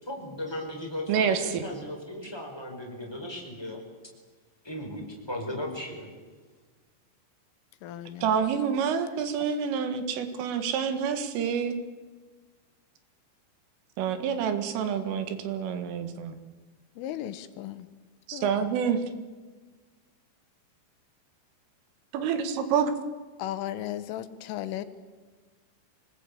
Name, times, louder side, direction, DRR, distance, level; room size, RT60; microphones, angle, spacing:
voice 1, 0.0-3.8 4.6-6.1, left 1 dB, 5° left, 0 dB, 4.5 m, -36 dB
voice 2, 1.1-1.6 8.2-11.8 14.0-16.3 18.3-19.0 22.1-22.9, right 7 dB, 85° right, 9 dB, 4.3 m, -27 dB
voice 3, 7.8-8.3 17.0-17.9 18.3-18.7 23.4-24.9, left 12 dB, 85° left, 12 dB, 3.7 m, -36 dB
25.0 x 19.5 x 8.6 m, 1.4 s
omnidirectional pair, 5.6 m